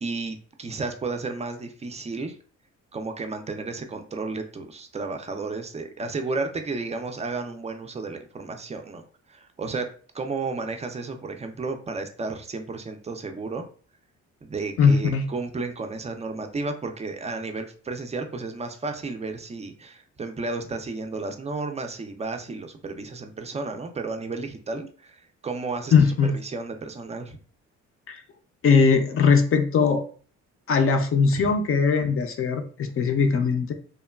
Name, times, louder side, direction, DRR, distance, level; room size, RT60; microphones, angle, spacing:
voice 1, 0.0-2.4 2.9-9.0 9.3-9.9 10.1-13.7 14.4-27.4 31.3-31.5, right 3 dB, 20° right, 6 dB, 0.4 m, -33 dB
voice 2, 14.8-15.3 25.9-26.3 28.1-28.2 28.6-30.0 30.7-33.7, left 5 dB, 45° left, 6 dB, 0.5 m, -20 dB
3.0 x 2.1 x 2.2 m, 0.43 s
cardioid pair, 90°, 30 cm